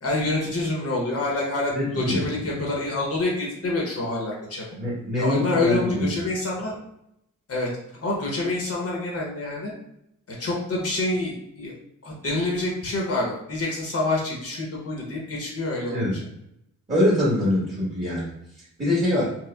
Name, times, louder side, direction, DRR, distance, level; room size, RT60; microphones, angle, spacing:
voice 1, 0.0-4.6 5.2-6.8 7.5-7.7 8.0-9.7 10.4-11.7 12.0-16.2, left 2 dB, 50° left, -3 dB, 0.8 m, -27 dB
voice 2, 1.7-2.3 4.8-6.2 15.9-16.1 16.9-19.4, left 1 dB, 25° right, -8 dB, 1.2 m, -24 dB
4.3 x 2.1 x 2.3 m, 0.80 s
wide cardioid pair, 115°, 31 cm